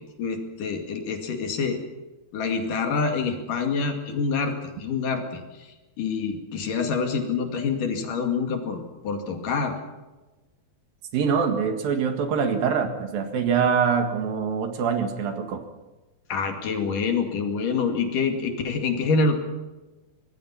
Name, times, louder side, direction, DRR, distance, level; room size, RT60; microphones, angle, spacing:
voice 1, 0.2-1.8 2.3-4.5 4.8-5.4 6.0-9.7 16.3-19.4, left 4 dB, 60° left, 4 dB, 3.7 m, -26 dB
voice 2, 11.1-15.7, right 6 dB, 70° right, 6 dB, 3.5 m, -24 dB
25.5 x 20.5 x 5.8 m, 1.1 s
omnidirectional pair, 4.4 m